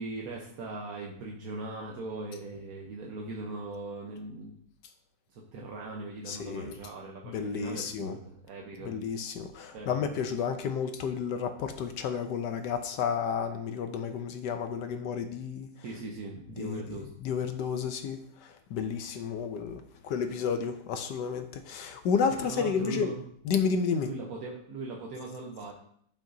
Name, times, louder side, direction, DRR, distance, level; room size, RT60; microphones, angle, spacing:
voice 1, 0.0-4.6 5.3-8.9 9.7-10.2 15.8-17.1 22.4-23.2 24.0-25.7, right 3 dB, 55° right, -1 dB, 1.2 m, -40 dB
voice 2, 6.3-6.7 7.2-8.2 8.8-15.7 16.6-23.1 23.5-24.1, left 6 dB, 70° left, 8 dB, 1.0 m, -31 dB
11.5 x 5.6 x 2.7 m, 0.68 s
omnidirectional pair, 2.2 m